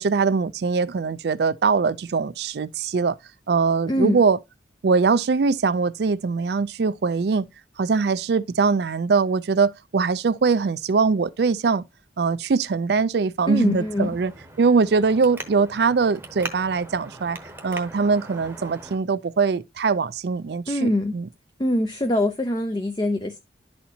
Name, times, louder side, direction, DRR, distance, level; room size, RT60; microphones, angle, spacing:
voice 1, 0.0-3.2 3.5-4.4 4.8-7.4 7.8-11.8 12.2-14.3 14.6-17.4 17.6-21.3, right 4 dB, 65° right, 0.4 m, -22 dB
voice 2, 3.9-4.2 13.5-14.2 20.7-21.1 21.6-23.4, left 1 dB, 25° left, 0.5 m, -23 dB
Traffic noise roadway noise, 13.6-19.0, right 2 dB, 10° right, 0.9 m, -40 dB
11.5 x 4.3 x 2.7 m
head